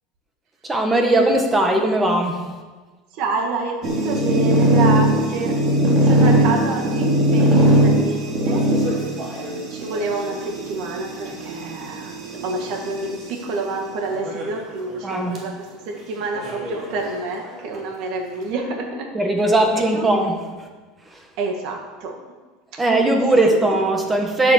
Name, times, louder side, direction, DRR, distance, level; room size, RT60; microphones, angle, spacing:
voice 1, 0.6-2.5 15.0-15.4 19.1-20.4 21.1-21.2 22.8-24.5, right 1 dB, 15° right, 3 dB, 1.7 m, -19 dB
voice 2, 3.1-5.8 6.0-9.1 9.7-12.2 12.4-19.1 19.4-20.1 21.4-22.2, right 3 dB, 55° right, 2 dB, 2.0 m, -28 dB
sound 1, 3.8-13.3 14.1-14.6 14.9-15.0 15.4-15.5 16.3-17.5, right 1 dB, 35° right, 3.1 m, -20 dB
10.5 x 8.3 x 6.7 m, 1.3 s
supercardioid pair, 145°, 0 cm